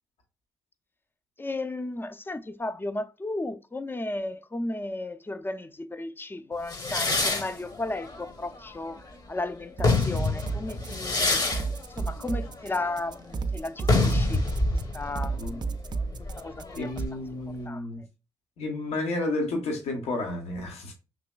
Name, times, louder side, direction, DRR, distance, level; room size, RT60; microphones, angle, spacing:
voice 1, 1.4-11.4 12.0-14.5 14.9-15.8 16.4-16.9 17.7-17.8, left 2 dB, 20° left, 0.5 m, -34 dB
sound 1, 6.7-9.2 9.6-17.1, left 2 dB, 40° left, 1.0 m, -28 dB
sound 2, 9.8-17.1, right 4 dB, 40° right, 0.4 m, -32 dB
voice 2, 16.8-18.0 18.6-20.9, left 2 dB, 70° left, 1.1 m, -31 dB
5.8 x 2.9 x 2.2 m
hypercardioid pair, 40°, 11 cm